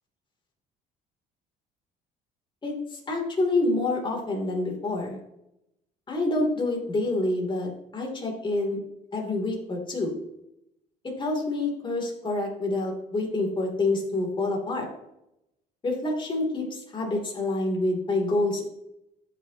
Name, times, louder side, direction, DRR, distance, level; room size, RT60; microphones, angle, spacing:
voice 1, 2.6-5.2 6.1-8.8 9.1-10.1 11.0-14.9 15.8-18.6, left 2 dB, 30° left, 0 dB, 2.8 m, -27 dB
13.0 x 6.0 x 2.9 m, 0.85 s
cardioid pair, 110°, 17 cm